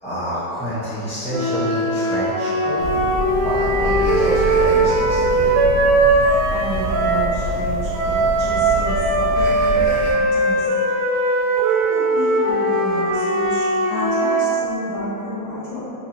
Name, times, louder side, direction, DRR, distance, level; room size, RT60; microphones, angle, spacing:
voice 1, 0.0-3.0 3.4-5.7, equal, 5° left, -15 dB, 0.7 m, -27 dB
sound 1, 1.3-7.4 7.9-14.6, right 2 dB, 80° right, 1.5 m, -19 dB
sound 2, 2.8-10.1, equal, 35° right, 0.6 m, -27 dB
voice 2, 6.5-10.6 11.2-15.9, left 1 dB, 55° left, -14 dB, 2.0 m, -31 dB
4.7 x 3.8 x 2.8 m, 2.9 s
omnidirectional pair, 2.1 m